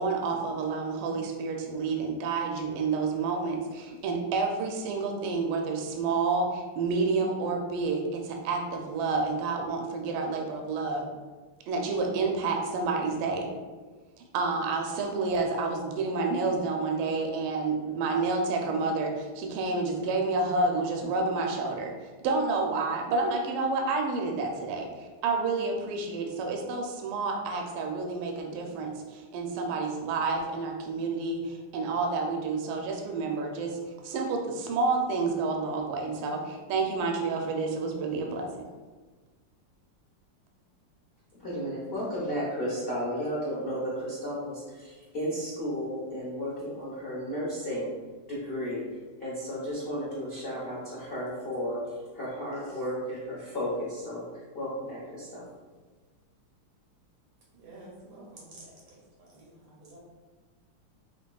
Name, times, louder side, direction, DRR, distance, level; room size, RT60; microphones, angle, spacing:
voice 1, 0.0-11.1 11.7-13.5 14.3-21.9 22.2-33.8 34.0-38.7, right 3 dB, 80° right, 2 dB, 1.4 m, -29 dB
voice 2, 41.4-47.9 48.3-48.8 49.2-55.4, equal, 70° left, -8 dB, 0.5 m, -33 dB
voice 3, 57.6-58.7 59.3-59.5 59.8-60.0, right 2 dB, 60° right, -4 dB, 1.0 m, -48 dB
5.0 x 2.8 x 2.3 m, 1.3 s
omnidirectional pair, 2.4 m